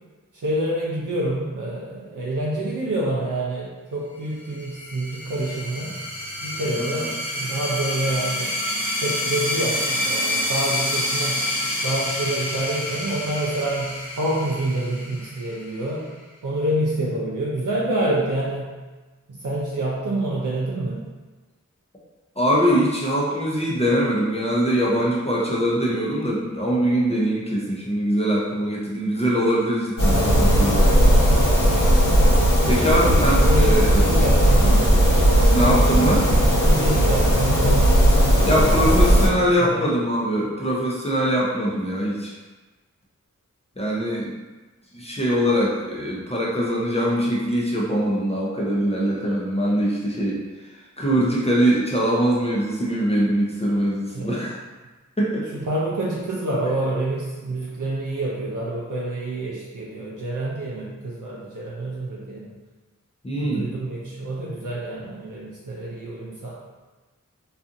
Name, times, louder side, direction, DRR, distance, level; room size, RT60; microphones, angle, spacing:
voice 1, 0.3-5.9 6.4-8.5 8.9-11.4 11.8-16.1 16.4-18.7 19.3-21.0 33.3-35.6 36.6-37.9 38.2-38.9 39.6-39.9 54.1-54.4 55.5-62.5 63.3-66.5, right 1 dB, 75° right, -5 dB, 0.5 m, -27 dB
sound 1, 4.5-15.8, left 1 dB, 5° right, 0.8 m, -28 dB
voice 2, 22.4-30.9 32.7-33.9 35.5-36.3 38.4-42.3 43.8-44.3 44.9-50.4 51.0-54.6 55.2-55.5 63.2-63.7, equal, 20° left, -6 dB, 0.5 m, -22 dB
sound 2, 30.0-39.3, equal, 80° left, 0.8 m, -17 dB
2.6 x 2.4 x 2.5 m, 1.2 s
wide cardioid pair, 60°, 31 cm